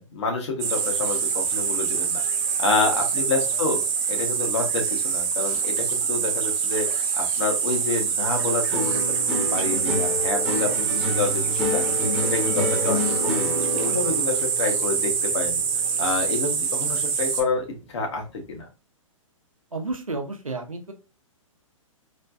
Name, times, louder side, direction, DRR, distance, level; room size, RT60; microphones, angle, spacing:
voice 1, 0.0-2.2 2.6-3.8 4.1-6.9 7.2-9.0 9.3-11.8 12.2-15.6 16.0-18.7, left 3 dB, 55° left, 2 dB, 1.1 m, -28 dB
sound 1, 0.6-17.4, right 6 dB, 30° right, 0.5 m, -25 dB
sound 2, 8.7-17.2 17.5-18.1, left 2 dB, ahead, 0.8 m, -30 dB
voice 2, 19.7-20.9, right 3 dB, 90° right, 5 dB, 0.7 m, -31 dB
3.2 x 2.2 x 2.5 m, 0.30 s
figure-of-eight pair, 120°, 17 cm